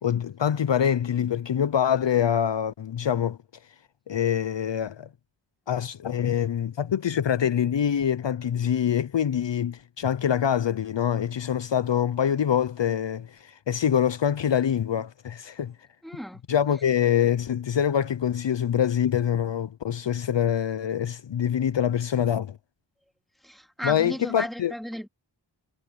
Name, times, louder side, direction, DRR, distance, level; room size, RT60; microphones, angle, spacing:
voice 1, 0.0-3.4 4.1-5.1 5.7-15.7 16.5-22.6 23.8-24.7, left 9 dB, 65° left, 0.7 m, -25 dB
voice 2, 16.0-16.4 23.4-25.1, equal, ahead, 2.4 m, -34 dB
wide cardioid pair, 60°, 47 cm